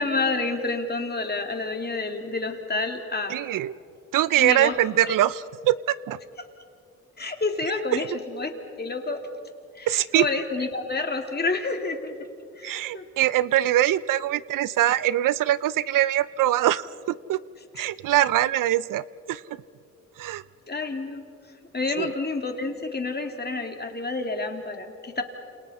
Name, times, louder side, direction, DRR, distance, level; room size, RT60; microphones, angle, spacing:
voice 1, 0.0-3.4 4.4-5.2 7.2-8.5 8.8-9.2 9.8-12.1 12.6-13.0 17.8-17.9 20.7-21.2 21.7-25.2, left 3 dB, 30° left, 4 dB, 2.6 m, -29 dB
voice 2, 3.3-3.7 4.1-6.2 7.9-8.0 9.9-10.3 12.6-16.8 17.3-17.4 17.7-19.4 20.2-20.4 22.0-22.1, right 13 dB, 85° right, 18 dB, 0.5 m, -23 dB
29.0 x 28.0 x 4.3 m, 2.4 s
cardioid pair, 75°, 31 cm